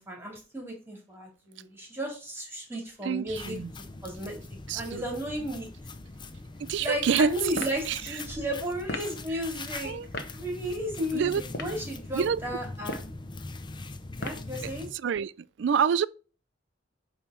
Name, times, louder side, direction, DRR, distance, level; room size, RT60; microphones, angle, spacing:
voice 1, 0.0-3.6 4.0-4.4 4.7-5.7 6.8-9.9 10.3-13.0 14.2-14.9, equal, 10° right, 2.3 m, -34 dB
voice 2, 3.0-3.7 4.7-5.0 6.6-7.3 7.9-8.0 9.8-10.1 11.1-11.4 12.1-12.4 14.6-15.3 15.6-16.1, right 7 dB, 60° right, 0.3 m, -27 dB
sound 1, 3.3-14.9, left 3 dB, 25° left, 0.5 m, -42 dB
sound 2, 7.5-7.8 8.9-9.1 10.1-10.3 11.4-11.8 12.8-13.2 14.2-14.5, left 2 dB, 55° left, 1.1 m, -35 dB
9.0 x 3.2 x 6.0 m
head